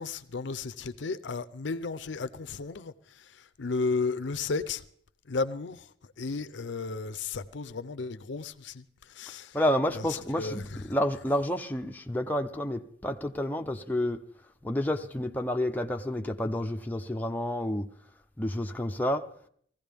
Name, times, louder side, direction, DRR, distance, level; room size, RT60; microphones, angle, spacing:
voice 1, 0.0-4.8 5.3-9.6 9.9-10.0 10.3-10.6, left 4 dB, 65° left, 0.6 m, -34 dB
voice 2, 9.5-14.2 14.6-17.9 18.4-19.3, left 1 dB, 10° left, 0.6 m, -29 dB
18.5 x 15.0 x 3.5 m
head